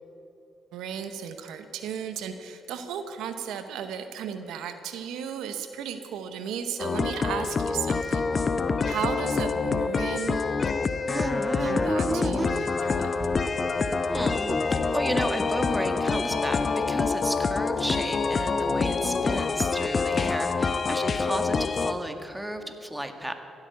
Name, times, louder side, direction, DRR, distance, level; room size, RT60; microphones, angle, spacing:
voice 1, 0.7-10.4 11.6-13.1, right 8 dB, 80° right, 9 dB, 0.8 m, -35 dB
sound 1, 6.8-21.9, left 4 dB, 45° left, 0.8 m, -26 dB
sound 2, 11.1-12.8 13.2-15.5, right 3 dB, 30° right, 0.6 m, -34 dB
voice 2, 14.1-23.3, right 1 dB, 10° right, 7 dB, 1.8 m, -33 dB
16.0 x 8.9 x 8.5 m, 2.8 s
supercardioid pair, 50°, 0 cm